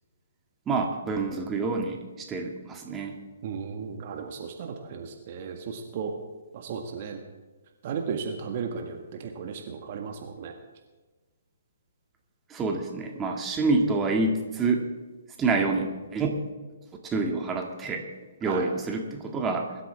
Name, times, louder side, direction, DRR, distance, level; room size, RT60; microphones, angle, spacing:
voice 1, 0.7-3.2 12.5-14.8 15.4-16.4 17.0-18.0 18.4-19.7, right 3 dB, 15° right, 2 dB, 2.1 m, -27 dB
voice 2, 3.4-6.1 6.5-7.2 7.8-10.5 18.4-18.7, right 6 dB, 45° right, 4 dB, 1.6 m, -35 dB
22.5 x 12.5 x 3.6 m, 1.3 s
figure-of-eight pair, 130°, 0 cm